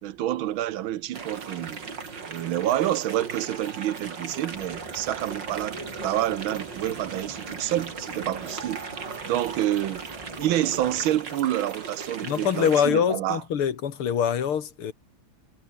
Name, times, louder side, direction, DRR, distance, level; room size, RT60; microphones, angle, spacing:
voice 1, 0.0-1.8 2.3-8.9 9.3-10.0 10.4-13.4, right 13 dB, 70° right, 1.5 m, -28 dB
sound 1, 1.1-12.9, right 5 dB, 55° right, 3.4 m, -38 dB
sound 2, 4.5-11.2, right 2 dB, 15° right, 2.6 m, -44 dB
voice 2, 12.2-14.9, left 8 dB, 85° left, 2.7 m, -24 dB
omnidirectional pair, 2.3 m